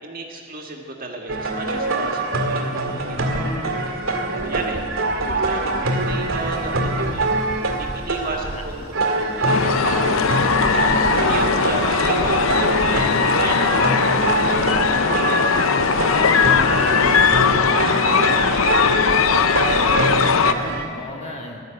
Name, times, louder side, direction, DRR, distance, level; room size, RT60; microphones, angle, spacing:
voice 1, 0.0-4.8 5.3-10.7 11.1-15.9 16.4-19.9, right 3 dB, 45° right, 2 dB, 1.9 m, -35 dB
sound 1, 1.3-20.9, right 2 dB, 80° right, 1.9 m, -23 dB
sound 2, 5.8-14.7, equal, 55° left, 3.8 m, -43 dB
voice 2, 8.2-8.6 10.6-11.3 19.8-21.6, left 1 dB, 35° left, 1 dB, 2.1 m, -37 dB
sound 3, 9.5-20.5, left 6 dB, 90° left, 0.6 m, -19 dB
15.5 x 12.0 x 7.8 m, 2.4 s
head